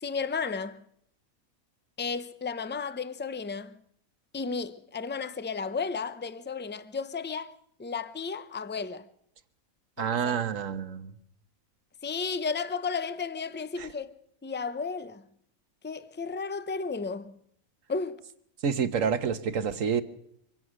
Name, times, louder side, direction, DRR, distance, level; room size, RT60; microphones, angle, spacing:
voice 1, 0.0-0.8 2.0-3.7 4.3-7.5 7.8-9.1 10.0-10.4 12.0-14.1 14.4-15.2 15.8-17.4 17.9-18.2, left 5 dB, 20° left, 0.3 m, -33 dB
voice 2, 10.0-11.2 13.8-13.9 18.6-20.0, right 7 dB, 65° right, 1.5 m, -28 dB
24.0 x 17.0 x 6.4 m
omnidirectional pair, 1.5 m